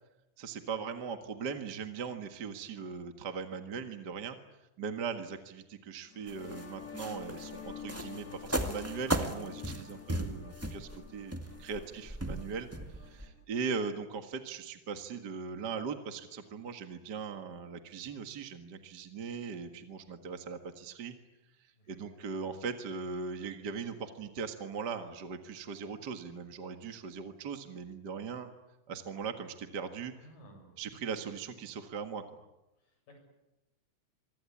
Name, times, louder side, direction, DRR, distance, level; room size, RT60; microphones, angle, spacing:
voice 1, 0.4-4.4 4.8-21.2 21.9-28.5 28.9-30.1 30.8-32.2, right 5 dB, 40° right, 6 dB, 1.6 m, -39 dB
sound 1, 6.1-13.4, left 8 dB, 30° left, 1.8 m, -48 dB
sound 2, 6.3-13.3, right 1 dB, 10° right, 0.7 m, -36 dB
voice 2, 11.5-12.0 21.7-22.2 30.2-30.8 32.8-33.2, right 1 dB, 70° left, 3 dB, 9.2 m, -58 dB
26.5 x 24.5 x 8.6 m, 0.95 s
omnidirectional pair, 4.1 m